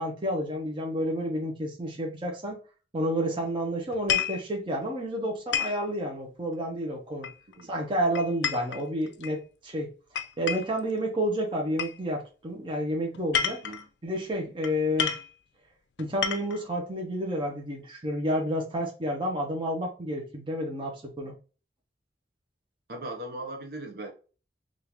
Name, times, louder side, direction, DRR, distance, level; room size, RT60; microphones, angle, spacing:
voice 1, 0.0-2.6 2.9-7.3 7.7-9.9 10.4-13.6 14.0-15.1 16.0-21.3, equal, 30° right, 0.8 m, -30 dB
sound 1, 3.9-4.4 5.5-5.8 7.2-7.6 8.1-9.3 10.1-10.8 11.8-12.0 13.1-13.8 14.6-14.7 15.0-15.3 16.0-16.6, left 8 dB, 85° left, 0.4 m, -30 dB
voice 2, 22.9-24.1, right 1 dB, 60° right, 0.7 m, -38 dB
3.6 x 2.5 x 2.9 m
head